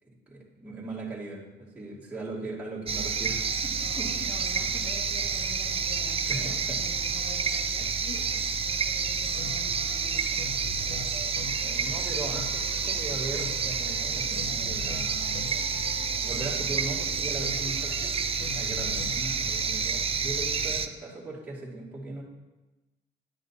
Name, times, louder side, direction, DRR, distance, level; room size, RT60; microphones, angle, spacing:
voice 1, 0.0-4.3 6.3-6.4 6.7-6.8 11.5-15.4 16.2-18.2 18.5-22.2, right 2 dB, 10° right, -10 dB, 2.6 m, -39 dB
voice 2, 2.9-3.2 3.7-10.6 16.2-17.0 19.2-19.6, left 2 dB, 85° left, -2 dB, 2.0 m, -47 dB
sound 1, 2.9-20.9, right 5 dB, 30° right, 0.5 m, -29 dB
sound 2, 9.1-19.2, left 4 dB, 70° left, 1.0 m, -43 dB
11.0 x 7.2 x 2.9 m, 1.1 s
cardioid pair, 90°, 20 cm